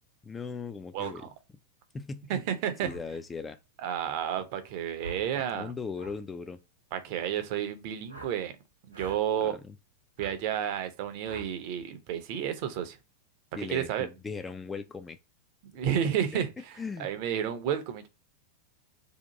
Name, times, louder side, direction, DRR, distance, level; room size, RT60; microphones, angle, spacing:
voice 1, 0.2-1.2 1.9-2.4 2.8-3.6 5.4-6.6 9.4-9.8 13.6-15.2 16.3-16.4 16.8-17.1, left 4 dB, 15° left, 0.3 m, -38 dB
voice 2, 0.9-1.3 2.3-2.9 3.8-5.7 6.9-8.6 8.9-9.6 10.2-13.0 13.6-14.1 15.7-16.5 17.0-18.1, right 9 dB, 45° right, 0.6 m, -31 dB
sound 1, 1.0-1.2 2.8-3.0 5.0-5.3 5.9-6.2 8.1-8.4 8.9-9.2 10.2-10.3 11.2-11.5, right 3 dB, 80° right, 0.9 m, -44 dB
2.8 x 2.4 x 3.9 m
figure-of-eight pair, 90°, 0 cm